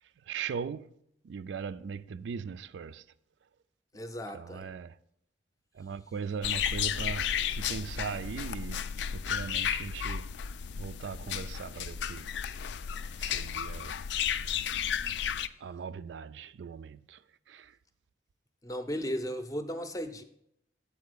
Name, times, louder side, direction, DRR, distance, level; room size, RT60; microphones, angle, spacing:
voice 1, 0.0-1.0 1.2-3.1 3.4-3.5 4.3-5.0 5.7-10.3 10.7-12.3 13.2-14.0 15.6-17.8, right 6 dB, 80° right, 0.3 m, -39 dB
voice 2, 3.9-4.7 18.6-20.2, equal, 20° left, 0.6 m, -35 dB
sound 1, 6.4-15.5, left 8 dB, 70° left, 0.3 m, -33 dB
8.2 x 4.3 x 6.6 m
head